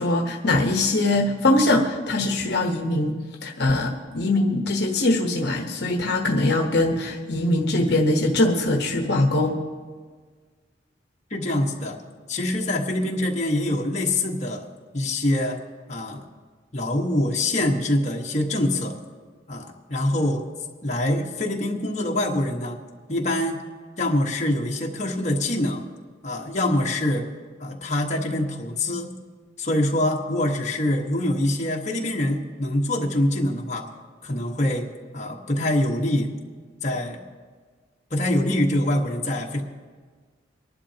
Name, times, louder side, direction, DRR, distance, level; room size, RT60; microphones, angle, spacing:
voice 1, 0.0-9.6, left 2 dB, 65° left, 2 dB, 1.1 m, -22 dB
voice 2, 11.3-12.0 12.3-15.6 15.9-16.3 16.7-19.0 19.5-20.4 20.8-22.8 23.1-23.6 24.0-25.9 26.2-27.3 27.6-29.1 29.6-33.9 34.2-34.9 35.1-36.3 36.8-37.2 38.1-39.6, left 1 dB, 40° left, -1 dB, 1.3 m, -24 dB
25.0 x 11.0 x 2.9 m, 1.5 s
head